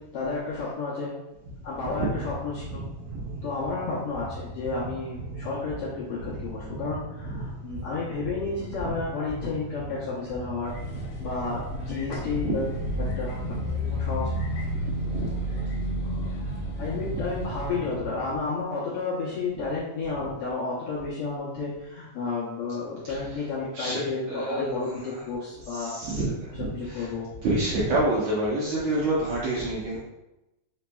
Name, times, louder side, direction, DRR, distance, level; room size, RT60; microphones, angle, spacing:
voice 1, 0.1-1.2 1.6-2.9 3.4-10.7 11.2-12.7 13.0-13.6 13.9-14.4 15.3-15.4 16.0-16.2 16.8-26.0 26.5-27.3 28.8-29.0, left 4 dB, 75° left, -8 dB, 1.3 m, -32 dB
voice 2, 1.8-2.3 3.1-3.3 6.2-6.4 7.3-7.4 12.3-12.6 14.9-15.3 17.2-17.3 23.1-24.0 24.3-27.1 27.4-30.0, right 2 dB, 70° right, -6 dB, 1.8 m, -29 dB
sound 1, 2.0-18.4, right 2 dB, 90° right, 1.3 m, -39 dB
sound 2, 10.6-17.7, equal, 60° left, 1.5 m, -32 dB
5.1 x 4.0 x 2.3 m, 0.94 s
omnidirectional pair, 3.8 m